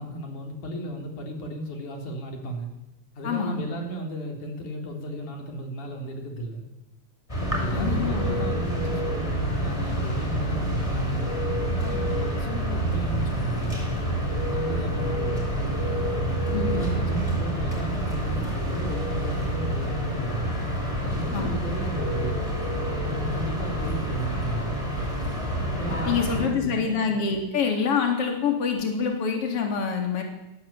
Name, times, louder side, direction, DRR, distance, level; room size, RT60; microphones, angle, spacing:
voice 1, 0.0-2.7 3.2-6.6 7.5-11.3 11.8-13.8 14.5-15.5 16.4-20.5 21.0-22.4 23.0-24.8 25.8-27.0, right 1 dB, 85° left, 2 dB, 5.7 m, -35 dB
voice 2, 3.2-3.7 7.7-8.4 16.5-17.1 21.3-21.6 26.1-30.2, left 6 dB, 50° left, 2 dB, 4.3 m, -26 dB
sound 1, 7.3-26.5, right 1 dB, 10° left, 5.9 m, -27 dB
21.0 x 20.0 x 8.6 m, 0.94 s
omnidirectional pair, 3.4 m